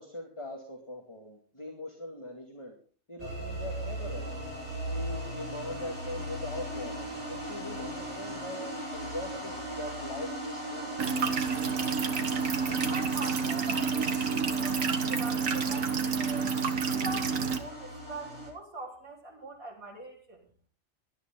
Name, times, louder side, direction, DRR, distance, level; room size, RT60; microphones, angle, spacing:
voice 1, 0.0-2.7 3.1-4.4 4.8-10.9, left 1 dB, 20° left, 1 dB, 2.5 m, -41 dB
sound 1, 3.2-18.5, right 1 dB, 50° right, 5.7 m, -38 dB
sound 2, 11.0-17.6, right 5 dB, 75° right, 1.7 m, -29 dB
voice 2, 12.9-14.2 14.6-16.6 16.9-20.5, right 2 dB, 90° right, -2 dB, 4.7 m, -43 dB
18.0 x 12.0 x 3.9 m, 0.42 s
omnidirectional pair, 1.4 m